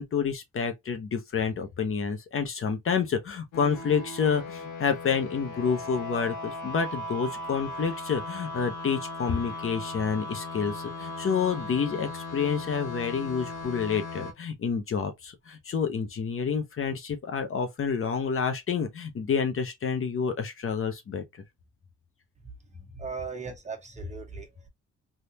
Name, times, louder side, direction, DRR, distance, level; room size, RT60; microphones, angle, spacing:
voice 1, 0.0-21.2, left 6 dB, 45° left, 0.9 m, -29 dB
sound 1, 3.5-14.3, left 2 dB, 85° left, 1.1 m, -38 dB
voice 2, 22.7-24.7, right 5 dB, 25° right, 1.4 m, -38 dB
3.5 x 2.6 x 2.8 m
cardioid pair, 90°, 30 cm